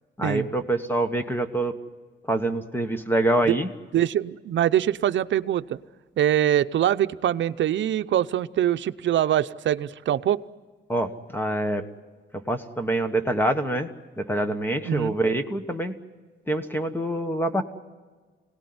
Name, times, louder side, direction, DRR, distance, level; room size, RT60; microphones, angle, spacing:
voice 1, 0.2-1.7 2.3-3.7 10.9-11.8 12.5-13.9 14.2-15.9 16.5-17.6, right 1 dB, 10° left, 8 dB, 1.3 m, -25 dB
voice 2, 3.9-5.8 6.2-10.4 14.8-15.1, right 11 dB, 70° right, 11 dB, 0.7 m, -23 dB
25.5 x 18.0 x 9.6 m, 1.4 s
wide cardioid pair, 140°, 20 cm